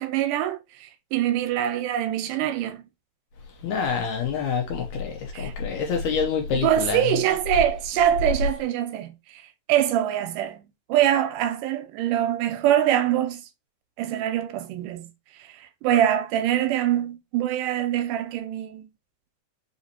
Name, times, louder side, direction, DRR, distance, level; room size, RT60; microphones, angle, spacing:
voice 1, 0.0-2.8 5.3-5.5 6.6-9.4 9.7-13.5 14.0-15.1 15.4-18.9, right 11 dB, 80° right, 2.1 m, -24 dB
voice 2, 3.6-7.0, left 6 dB, 75° left, 1.8 m, -27 dB
5.1 x 2.7 x 2.8 m
omnidirectional pair, 3.8 m